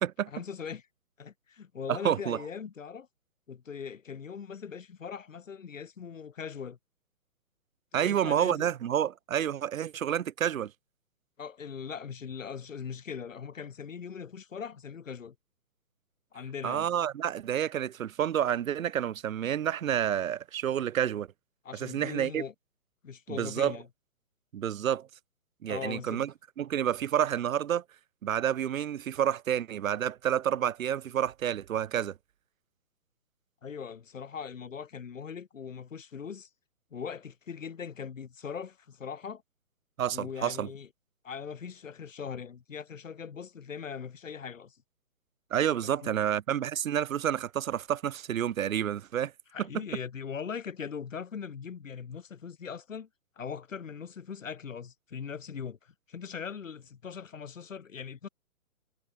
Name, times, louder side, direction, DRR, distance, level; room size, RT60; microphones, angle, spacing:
voice 1, 0.3-0.8 1.2-3.1 3.5-6.8 7.9-8.7 11.4-15.3 16.3-16.9 21.6-22.5 23.0-23.9 25.7-26.2 33.6-36.5 36.9-39.4 40.1-40.9 41.2-44.8 45.7-46.2 49.5-53.1 53.4-58.3, left 6 dB, 60° left, 3.1 m, -40 dB
voice 2, 1.9-2.4 7.9-10.7 16.6-21.3 21.8-22.4 23.3-23.8 24.5-25.1 25.6-26.3 26.6-27.8 28.2-32.1 40.0-40.7 45.5-49.3, right 10 dB, 65° right, 0.5 m, -29 dB
hypercardioid pair, 170°, 44 cm